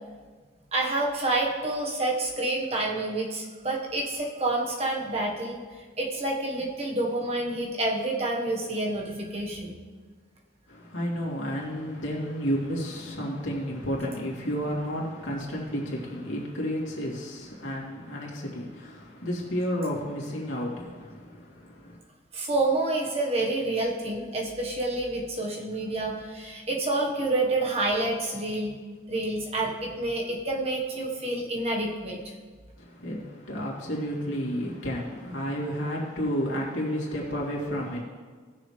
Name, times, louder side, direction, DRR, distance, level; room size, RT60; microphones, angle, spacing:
voice 1, 0.7-5.6 6.0-9.8 22.3-28.8 29.1-32.2, right 2 dB, 30° right, -2 dB, 1.4 m, -28 dB
voice 2, 10.7-22.0 32.8-38.0, equal, 85° left, -4 dB, 2.8 m, -31 dB
18.5 x 6.7 x 3.3 m, 1.5 s
head